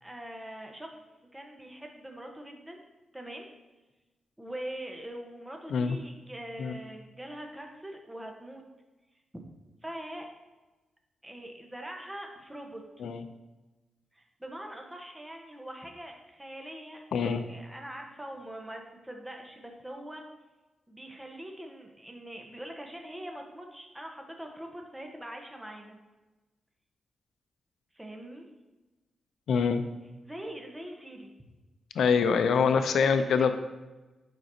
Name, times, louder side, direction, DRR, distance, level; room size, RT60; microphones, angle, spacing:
voice 1, 0.0-0.9 1.3-2.8 3.1-3.5 4.4-8.6 9.8-10.3 11.2-12.8 14.1-20.2 20.9-26.0 27.9-28.5 30.2-31.3 32.5-33.5, right 1 dB, 10° right, 2 dB, 0.9 m, -43 dB
voice 2, 17.1-17.4 29.5-29.8 32.0-33.5, left 6 dB, 80° left, 9 dB, 0.4 m, -24 dB
7.7 x 5.1 x 2.7 m, 1.1 s
cardioid pair, 105°, 0 cm